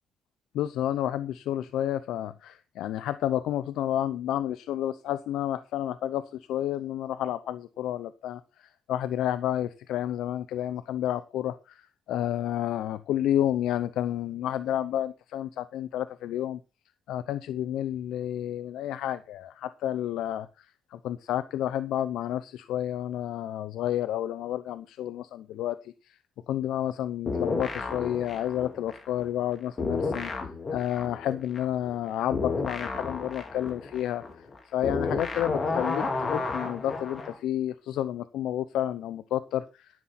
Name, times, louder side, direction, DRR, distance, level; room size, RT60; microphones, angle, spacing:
voice 1, 0.5-16.6 17.1-20.7 20.9-26.2 26.5-30.3 30.7-39.9, left 11 dB, 85° left, 14 dB, 0.7 m, -30 dB
sound 1, 27.3-29.5 29.8-37.4, left 3 dB, 40° left, 4.1 m, -32 dB
12.0 x 10.0 x 4.2 m, 0.31 s
cardioid pair, 90°, 0 cm